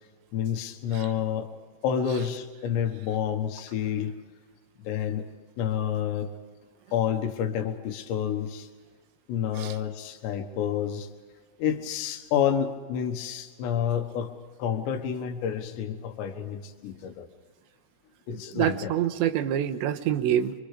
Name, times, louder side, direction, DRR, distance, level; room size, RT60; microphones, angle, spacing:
voice 1, 0.3-1.5 1.8-4.1 4.9-5.3 5.6-6.3 6.9-8.7 9.3-11.1 11.6-14.3 14.6-17.3 18.3-18.9, left 8 dB, 80° left, 6 dB, 3.6 m, -29 dB
voice 2, 18.6-20.5, right 11 dB, 85° right, 8 dB, 3.3 m, -26 dB
29.5 x 24.0 x 5.0 m, 1.5 s
omnidirectional pair, 5.1 m